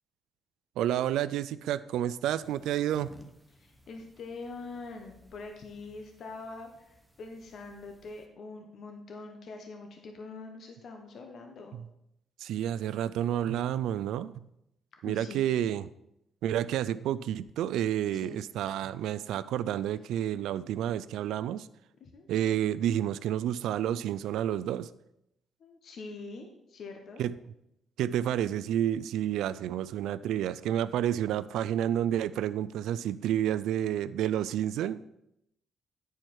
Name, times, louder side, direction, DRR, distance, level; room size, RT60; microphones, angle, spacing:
voice 1, 0.8-3.2 12.4-14.3 15.0-15.9 16.4-21.7 22.3-24.9 27.2-27.3 28.0-35.0, right 11 dB, 85° right, 16 dB, 0.3 m, -30 dB
sound 1, 2.4-8.3, equal, 5° right, 0.9 m, -56 dB
voice 2, 3.6-11.7 15.0-15.4 18.1-18.4 22.0-22.3 25.6-27.2, left 3 dB, 60° left, 3 dB, 1.0 m, -44 dB
9.6 x 4.5 x 4.5 m, 0.81 s
cardioid pair, 90°, 0 cm